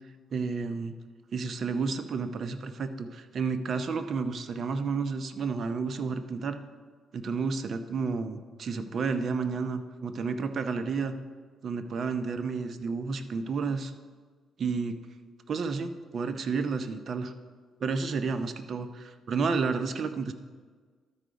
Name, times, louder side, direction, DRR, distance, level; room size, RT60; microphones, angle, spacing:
voice 1, 0.3-0.9 1.3-6.6 7.1-11.1 11.6-13.9 14.6-14.9 15.5-17.3 17.8-20.3, right 4 dB, 55° right, 9 dB, 0.6 m, -31 dB
12.5 x 4.7 x 5.1 m, 1.5 s
cardioid pair, 90°, 0 cm